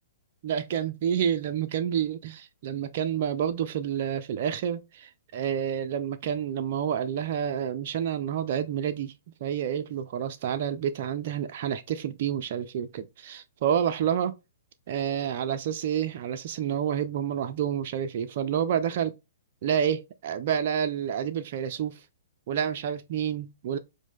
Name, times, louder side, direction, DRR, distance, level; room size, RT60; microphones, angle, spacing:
voice 1, 0.4-9.1 9.4-14.3 14.9-19.1 19.6-22.0 22.5-23.8, right 9 dB, 45° right, 0.3 m, -29 dB
4.8 x 2.1 x 3.5 m
figure-of-eight pair, 115°, 0 cm